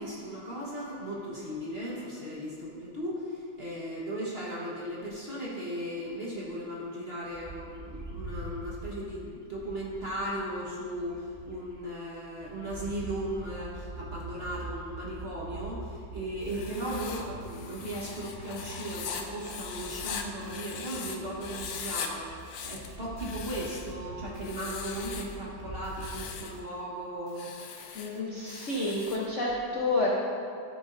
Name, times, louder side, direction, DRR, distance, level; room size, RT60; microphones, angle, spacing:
voice 1, 0.0-22.3 22.6-27.5, right 1 dB, 35° right, -6 dB, 1.2 m, -37 dB
Bird, 7.3-11.8 12.2-26.4, right 1 dB, 10° right, 1.8 m, -44 dB
Writing, 16.4-21.2 21.4-22.1 22.4-23.9 24.4-25.3 25.8-26.6 27.3-29.3, left 6 dB, 75° left, 1.4 m, -40 dB
voice 2, 27.9-30.1, left 2 dB, 50° left, -5 dB, 0.9 m, -29 dB
12.5 x 7.2 x 2.6 m, 2.4 s
omnidirectional pair, 2.2 m